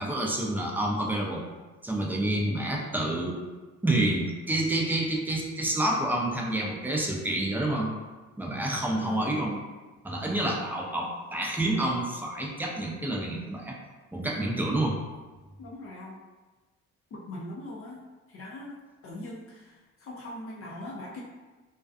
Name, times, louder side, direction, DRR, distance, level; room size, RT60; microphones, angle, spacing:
voice 1, 0.0-1.4 1.8-3.4 3.8-7.9 8.4-9.6 10.0-13.7 14.1-15.0, right 1 dB, 5° right, -1 dB, 0.4 m, -28 dB
voice 2, 9.0-9.3 15.6-16.2 17.1-18.0 18.3-21.2, left 1 dB, 50° left, -3 dB, 0.5 m, -41 dB
2.5 x 2.2 x 2.4 m, 1.2 s
cardioid pair, 90°, 30 cm